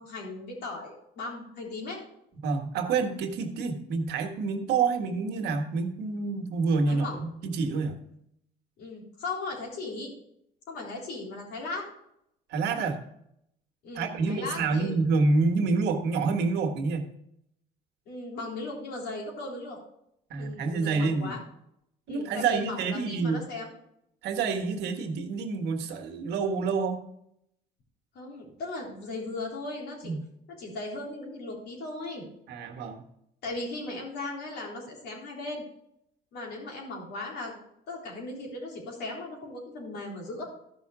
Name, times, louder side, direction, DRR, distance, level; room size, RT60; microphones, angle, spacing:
voice 1, 0.0-2.0 6.9-7.2 8.8-10.1 10.7-11.9 13.8-14.9 18.1-19.8 20.3-21.4 22.1-23.7 28.1-30.1 30.6-32.3 33.4-35.6 36.3-37.5 37.9-40.4, left 2 dB, 75° left, -1 dB, 3.8 m, -37 dB
voice 2, 2.4-8.0 12.5-13.0 14.0-17.1 20.3-21.4 22.1-23.4 24.2-27.0 30.0-30.2 32.5-33.0, right 4 dB, 80° right, 4 dB, 1.5 m, -28 dB
13.0 x 5.8 x 4.8 m, 0.77 s
cardioid pair, 110°, 17 cm